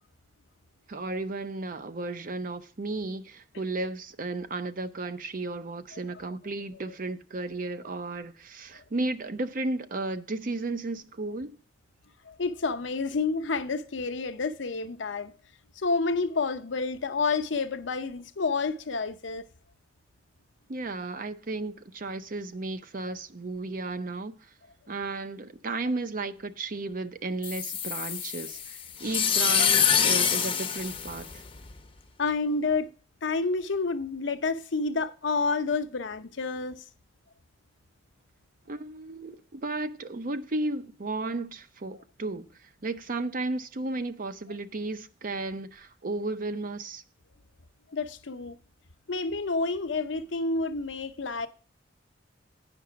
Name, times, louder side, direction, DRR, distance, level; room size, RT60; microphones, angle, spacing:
voice 1, 0.9-11.6 20.7-24.4 24.9-31.4 38.7-47.0, right 2 dB, 50° right, 0.6 m, -34 dB
voice 2, 12.3-15.3 15.8-19.4 32.2-32.9 33.2-36.8 47.9-48.6 49.1-51.5, left 4 dB, 85° left, 0.7 m, -29 dB
sound 1, 27.4-31.8, left 7 dB, 30° left, 0.7 m, -26 dB
9.4 x 5.3 x 5.8 m
head